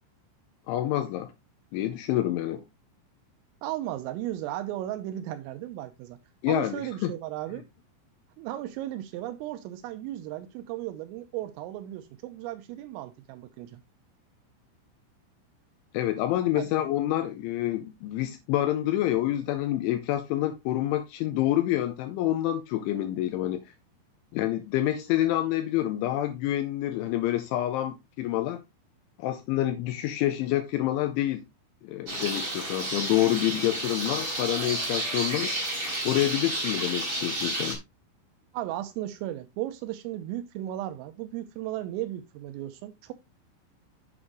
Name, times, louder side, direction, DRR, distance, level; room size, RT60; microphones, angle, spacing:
voice 1, 0.7-1.3 1.7-2.6 6.4-7.1 15.9-23.6 24.3-28.6 29.2-31.4 31.8-35.5 36.0-37.8, left 13 dB, 85° left, 2.9 m, -27 dB
voice 2, 3.6-6.2 6.5-7.7 8.4-13.8 16.6-16.7 38.5-43.1, right 13 dB, 85° right, 3.4 m, -35 dB
sound 1, 32.1-37.8, right 1 dB, 20° right, 4.0 m, -31 dB
8.6 x 7.2 x 3.1 m
omnidirectional pair, 5.9 m